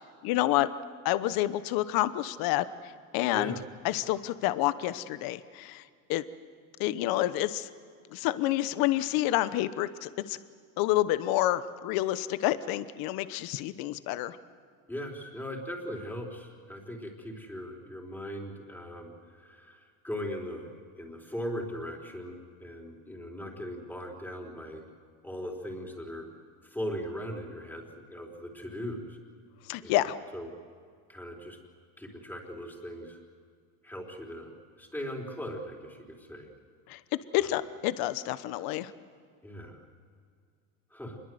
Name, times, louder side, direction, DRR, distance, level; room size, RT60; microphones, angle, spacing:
voice 1, 0.2-0.7 1.0-3.5 3.8-5.8 6.1-6.2 6.8-7.7 8.1-10.4 10.8-14.4 29.7-30.2 36.9-37.0 37.3-38.9, left 15 dB, 60° left, 14 dB, 1.1 m, -28 dB
voice 2, 14.9-20.7 20.9-24.8 25.2-26.3 26.6-29.2 29.8-30.5 31.1-31.6 32.0-33.2 33.8-36.5 37.4-37.5 39.4-39.8 40.9-41.2, equal, 5° left, 0 dB, 4.1 m, -39 dB
26.0 x 22.0 x 7.9 m, 2.1 s
cardioid pair, 130°, 40 cm